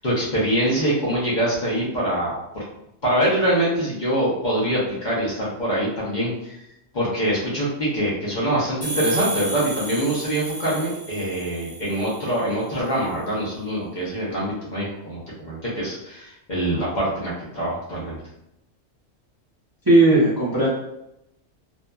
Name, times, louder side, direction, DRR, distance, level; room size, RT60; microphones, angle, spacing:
voice 1, 0.0-2.6 3.0-6.6 6.9-18.2, right 1 dB, 40° left, -7 dB, 0.8 m, -24 dB
sound 1, 8.8-12.4, right 2 dB, 10° left, 0.7 m, -32 dB
voice 2, 19.8-20.7, right 2 dB, 25° right, -9 dB, 0.5 m, -16 dB
2.7 x 2.4 x 2.2 m, 0.84 s
omnidirectional pair, 1.3 m